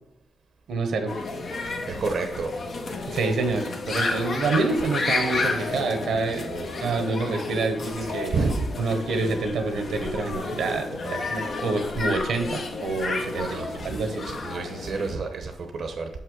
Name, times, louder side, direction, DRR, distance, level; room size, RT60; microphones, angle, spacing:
voice 1, 0.7-1.1 3.1-6.5 6.8-8.4 8.8-14.3, right 3 dB, 85° right, 6 dB, 1.0 m, -27 dB
sound 1, 1.1-15.2, left 3 dB, 55° left, 1.0 m, -31 dB
voice 2, 1.9-2.5 6.5-6.7 8.1-8.8 11.0-11.2 13.3-14.0 14.2-16.1, right 3 dB, 60° right, 4 dB, 0.8 m, -30 dB
6.8 x 5.6 x 3.9 m, 0.95 s
cardioid pair, 100°, 0 cm